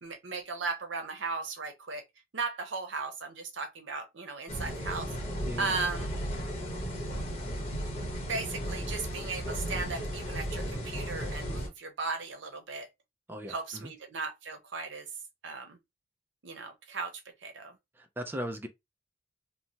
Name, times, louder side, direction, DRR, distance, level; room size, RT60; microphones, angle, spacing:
voice 1, 0.0-2.0 2.3-5.1 5.6-6.1 8.3-12.9 13.5-15.1 15.4-15.8 16.4-17.1 17.4-17.8, right 4 dB, 80° right, 0.7 m, -36 dB
sound 1, 4.5-11.7, equal, 35° left, 0.9 m, -35 dB
voice 2, 5.5-5.8 13.3-13.9 18.0-18.7, equal, 10° right, 0.3 m, -38 dB
3.0 x 2.1 x 2.7 m
head